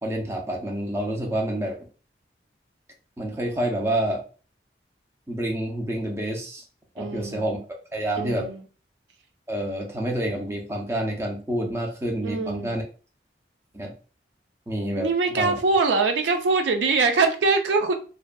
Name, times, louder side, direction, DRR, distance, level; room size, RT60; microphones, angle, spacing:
voice 1, 0.0-1.8 3.2-4.2 5.3-6.6 7.0-7.6 7.9-8.5 9.5-12.8 13.7-13.9 14.7-15.5, right 1 dB, 15° right, 0.4 m, -28 dB
voice 2, 7.0-7.4 8.2-8.5 12.2-12.7 15.0-17.9, right 4 dB, 80° right, 0.4 m, -23 dB
2.5 x 2.3 x 2.2 m
head